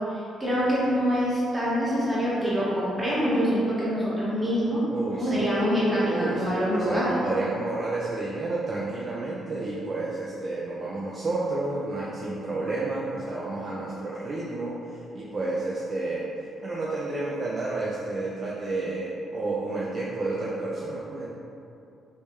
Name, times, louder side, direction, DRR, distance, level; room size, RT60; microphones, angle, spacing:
voice 1, 0.4-4.8 5.1-7.2, equal, 10° right, -8 dB, 1.0 m, -25 dB
voice 2, 4.9-5.4 6.0-16.3 16.6-21.3, right 2 dB, 35° right, -6 dB, 0.4 m, -30 dB
3.1 x 2.7 x 3.6 m, 2.6 s
cardioid pair, 135°, 0 cm